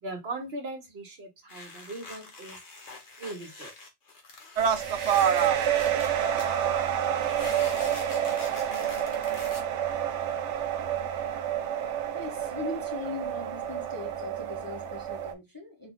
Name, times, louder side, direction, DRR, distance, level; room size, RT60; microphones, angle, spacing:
voice 1, 0.0-2.6 3.2-3.7, right 2 dB, 65° right, 1.4 m, -39 dB
sound 1, 1.5-6.6 7.2-9.6, left 3 dB, 80° left, 1.5 m, -44 dB
sound 2, 4.6-15.3, right 9 dB, 90° right, 0.9 m, -28 dB
voice 2, 12.1-15.9, left 4 dB, 20° left, 0.7 m, -39 dB
4.5 x 2.4 x 3.5 m
omnidirectional pair, 1.2 m